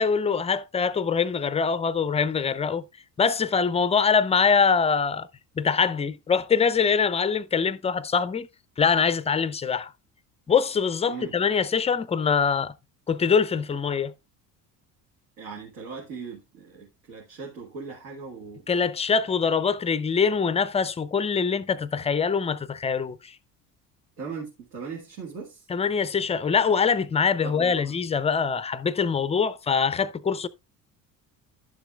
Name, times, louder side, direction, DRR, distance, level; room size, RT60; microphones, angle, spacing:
voice 1, 0.0-2.8 3.2-5.3 5.6-8.5 8.8-9.9 10.5-12.7 13.1-14.1 18.7-23.4 25.7-30.5, left 6 dB, 15° left, 0.4 m, -23 dB
voice 2, 15.4-18.7 24.2-25.7 27.4-27.9, right 5 dB, 75° right, 2.0 m, -39 dB
11.5 x 7.0 x 2.4 m
hypercardioid pair, 60°, 48 cm